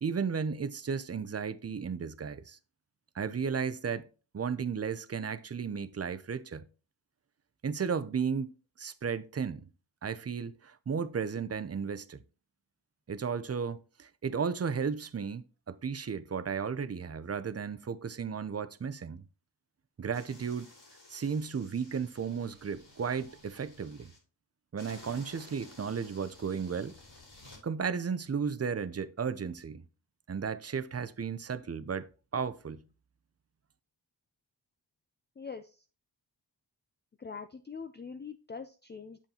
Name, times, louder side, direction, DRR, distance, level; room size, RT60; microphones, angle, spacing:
voice 1, 0.0-2.6 3.1-4.1 4.3-6.7 7.6-9.6 10.0-12.2 13.1-19.2 20.0-20.7 21.1-24.1 24.7-27.0 27.6-29.8 30.3-32.8, right 6 dB, 35° right, 0.6 m, -34 dB
sound 1, 20.1-24.2 24.8-27.6, left 2 dB, 75° left, 3.6 m, -55 dB
voice 2, 35.4-35.9 37.2-39.3, left 5 dB, 25° left, 0.4 m, -43 dB
8.0 x 7.1 x 2.9 m
wide cardioid pair, 65°, 44 cm